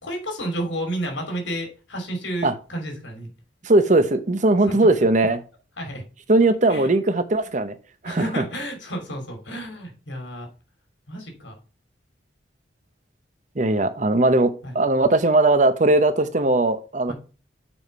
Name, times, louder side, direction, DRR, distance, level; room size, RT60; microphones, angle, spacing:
voice 1, 0.0-3.3 4.6-4.8 5.8-6.0 6.7-6.9 8.0-10.5 11.1-11.6 14.6-14.7 17.1-17.2, right 1 dB, 75° left, 3.0 m, -31 dB
voice 2, 3.6-5.4 6.3-7.8 8.0-8.4 13.6-17.1, right 2 dB, 40° right, 0.8 m, -19 dB
7.1 x 4.8 x 5.4 m
head